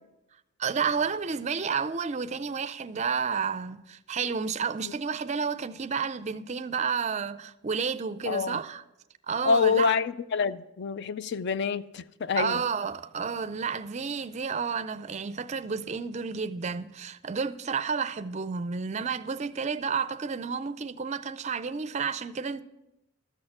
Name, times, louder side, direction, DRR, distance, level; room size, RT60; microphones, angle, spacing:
voice 1, 0.6-8.8 9.3-9.9 12.4-22.6, right 5 dB, 30° right, 0.4 m, -31 dB
voice 2, 8.3-8.6 9.4-12.6, left 5 dB, 55° left, 0.4 m, -27 dB
13.5 x 6.4 x 6.0 m
head